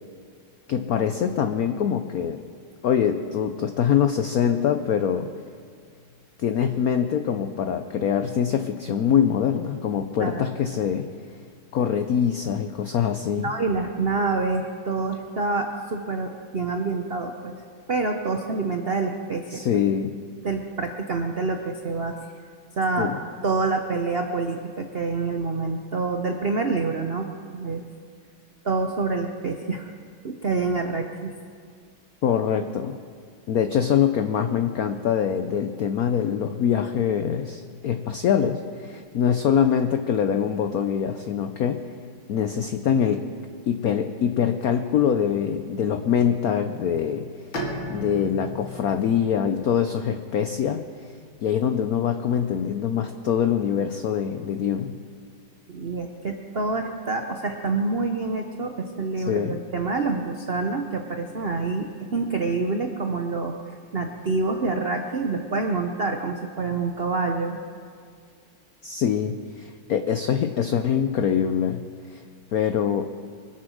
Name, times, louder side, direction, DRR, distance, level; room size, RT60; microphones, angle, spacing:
voice 1, 0.7-2.5 2.8-5.3 6.4-11.1 11.7-13.5 19.5-20.2 23.0-23.2 32.2-33.0 33.5-41.9 42.3-43.3 43.7-47.3 47.9-51.1 51.4-54.9 59.2-59.6 68.8-72.2 72.5-73.1, left 8 dB, 85° left, 8 dB, 0.7 m, -24 dB
voice 2, 13.4-17.5 17.9-19.6 20.4-22.2 22.8-23.1 23.4-27.8 28.6-29.9 30.2-31.3 55.7-63.5 63.9-67.6, right 3 dB, 85° right, 4 dB, 0.5 m, -27 dB
Bowed string instrument, 47.5-51.2, left 1 dB, 65° left, 2.6 m, -36 dB
24.0 x 8.6 x 6.3 m, 2.1 s
omnidirectional pair, 2.4 m